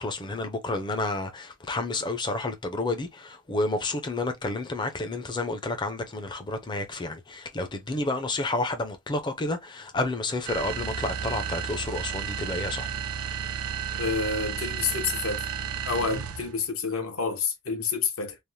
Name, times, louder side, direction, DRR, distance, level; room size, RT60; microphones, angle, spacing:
voice 1, 0.0-12.9, left 2 dB, 20° left, 0.5 m, -30 dB
sound 1, 10.5-16.6, right 7 dB, 80° right, 0.5 m, -32 dB
voice 2, 14.0-15.4 15.8-18.4, left 5 dB, 70° left, 0.9 m, -29 dB
3.2 x 2.0 x 2.6 m
head